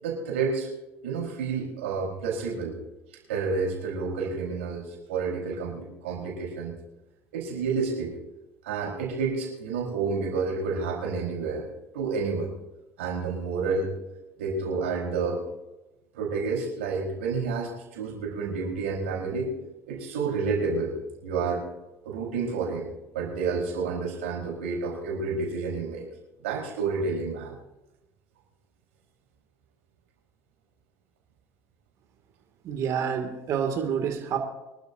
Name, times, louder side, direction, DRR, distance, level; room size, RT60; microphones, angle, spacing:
voice 1, 0.0-0.7 1.0-2.8 3.3-6.7 7.3-8.1 8.6-11.7 11.9-12.5 13.0-13.9 14.4-15.4 16.1-19.5 19.9-20.9 21.2-21.6 22.0-22.9 23.1-26.1 26.4-27.5, right 4 dB, 90° right, -1 dB, 4.4 m, -29 dB
voice 2, 32.6-34.4, right 7 dB, 55° right, 3 dB, 2.4 m, -28 dB
24.5 x 12.5 x 2.8 m, 1.0 s
hypercardioid pair, 80°, 7 cm